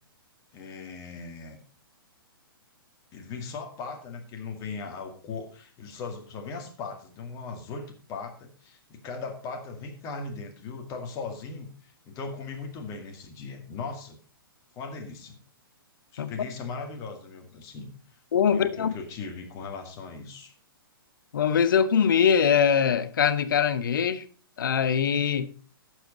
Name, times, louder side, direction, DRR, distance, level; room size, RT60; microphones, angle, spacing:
voice 1, 0.5-1.6 3.1-14.2 14.7-15.4 16.1-17.9 18.5-20.5, left 4 dB, 25° left, 2.0 m, -38 dB
voice 2, 18.3-18.9 21.3-24.2 24.6-25.5, left 7 dB, 60° left, 0.8 m, -22 dB
11.5 x 7.4 x 4.0 m
figure-of-eight pair, 120°, 12 cm